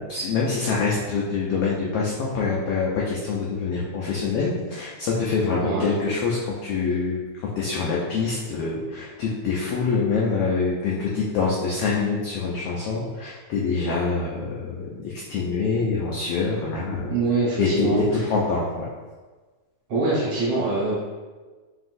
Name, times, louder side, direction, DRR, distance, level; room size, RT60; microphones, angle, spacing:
voice 1, 0.0-7.2 7.6-17.1 17.6-18.9, left 4 dB, 90° left, -4 dB, 1.3 m, -25 dB
voice 2, 5.6-5.9 17.1-18.3 19.9-20.9, right 3 dB, 60° right, -7 dB, 1.9 m, -24 dB
5.7 x 2.6 x 2.5 m, 1.3 s
omnidirectional pair, 3.4 m